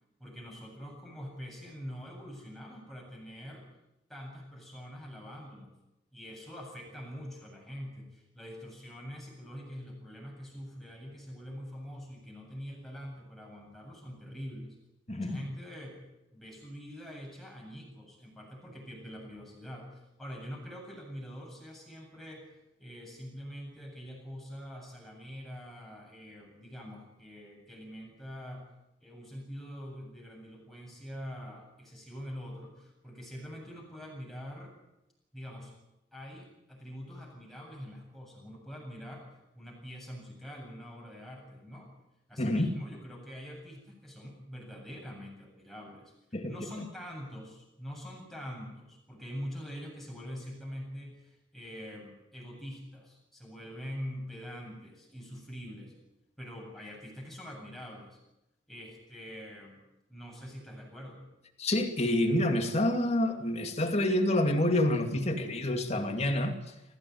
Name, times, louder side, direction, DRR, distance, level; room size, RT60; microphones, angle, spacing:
voice 1, 0.2-3.7 4.1-5.7 6.1-14.8 15.1-16.0 16.3-28.7 29.0-34.7 35.3-35.7 36.1-39.2 39.5-41.9 42.3-46.1 46.5-56.0 56.4-58.2 58.7-59.8 60.1-61.2, equal, ahead, 8.0 m, -44 dB
voice 2, 15.1-15.4 42.4-42.7 46.3-46.5 61.6-66.6, left 1 dB, 35° left, 2.5 m, -27 dB
25.0 x 15.5 x 9.5 m
head